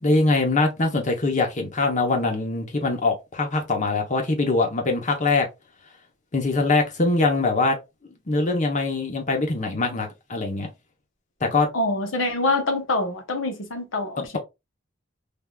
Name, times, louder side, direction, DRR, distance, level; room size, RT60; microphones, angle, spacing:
voice 1, 0.0-5.5 6.3-7.8 8.3-10.7 11.4-11.7 14.2-14.4, left 3 dB, 40° left, 0.9 m, -23 dB
voice 2, 11.7-14.4, left 2 dB, 85° left, 0.9 m, -25 dB
3.4 x 2.7 x 2.3 m
head